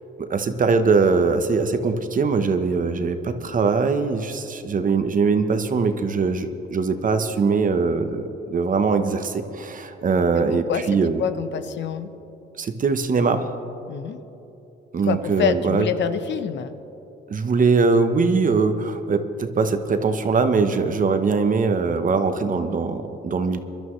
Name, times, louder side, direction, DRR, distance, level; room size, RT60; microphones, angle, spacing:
voice 1, 0.2-11.2 12.6-13.4 14.9-15.9 17.3-23.6, right 4 dB, 40° right, 8 dB, 1.0 m, -21 dB
voice 2, 10.4-12.1 13.9-14.2 15.0-16.8, left 7 dB, 65° left, 10 dB, 0.8 m, -26 dB
23.0 x 12.0 x 3.2 m, 3.0 s
cardioid pair, 90°, 20 cm